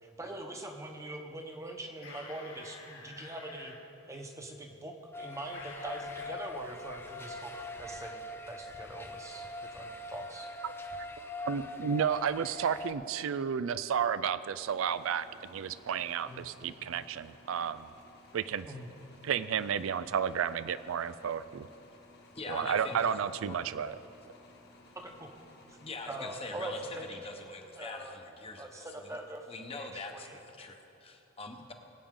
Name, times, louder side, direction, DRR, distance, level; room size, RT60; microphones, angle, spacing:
voice 1, 0.0-3.8 4.1-10.5 16.2-16.4 18.7-18.9 22.5-23.0 24.9-25.3 25.7-25.8 26.1-27.4 27.8-29.5 29.7-30.7, right 1 dB, 15° right, 3 dB, 1.0 m, -43 dB
sound 1, 2.0-3.8 5.5-6.4, left 3 dB, 70° left, 2.5 m, -49 dB
sound 2, 5.1-12.9, left 2 dB, 10° left, 0.5 m, -42 dB
voice 2, 11.4-17.9 18.3-18.7 19.2-21.7 22.5-24.0, right 7 dB, 80° right, 14 dB, 0.4 m, -32 dB
sound 3, 14.6-27.6, left 1 dB, 50° left, 1.6 m, -58 dB
voice 3, 22.3-23.5 25.8-29.2 29.5-31.7, left 3 dB, 30° left, 4 dB, 1.0 m, -44 dB
22.0 x 8.7 x 3.8 m, 2.9 s
head